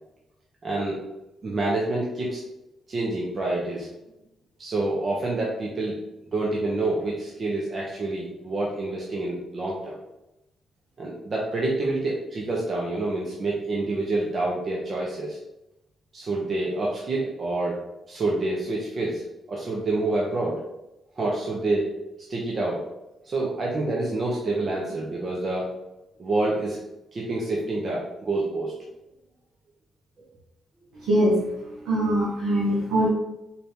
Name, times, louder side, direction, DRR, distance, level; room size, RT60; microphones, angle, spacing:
voice 1, 0.6-1.0 1.4-2.4 2.9-3.9 4.6-6.0 6.3-10.0 11.0-15.4 16.1-17.8 18.1-19.2 19.5-20.6 21.2-21.9 22.3-22.8 23.2-25.7 26.2-26.8 27.1-28.7, right 2 dB, 45° right, -3 dB, 0.8 m, -27 dB
voice 2, 31.0-31.4 31.8-33.1, equal, 90° right, -6 dB, 1.0 m, -22 dB
4.2 x 2.7 x 3.4 m, 0.92 s
cardioid pair, 80°, 0 cm